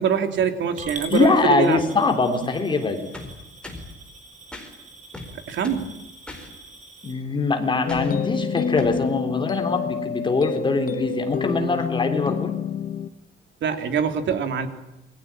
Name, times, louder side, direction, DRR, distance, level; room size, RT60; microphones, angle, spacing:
voice 1, 0.0-1.8 5.3-5.9 13.6-14.7, right 7 dB, 65° right, 8 dB, 3.1 m, -24 dB
Coin (dropping) / Glass, 0.8-7.1, right 3 dB, 35° right, 5.6 m, -43 dB
voice 2, 1.1-3.0 7.0-12.5, left 3 dB, 25° left, 5 dB, 3.6 m, -22 dB
sound 1, 3.1-3.9 4.5-4.7 5.1-5.9 6.3-6.5 7.9-8.2 8.8-9.0, left 2 dB, 5° left, 4.7 m, -38 dB
sound 2, 7.9-13.1, left 7 dB, 40° left, 1.3 m, -28 dB
28.0 x 23.0 x 8.9 m, 0.91 s
cardioid pair, 175°, 20 cm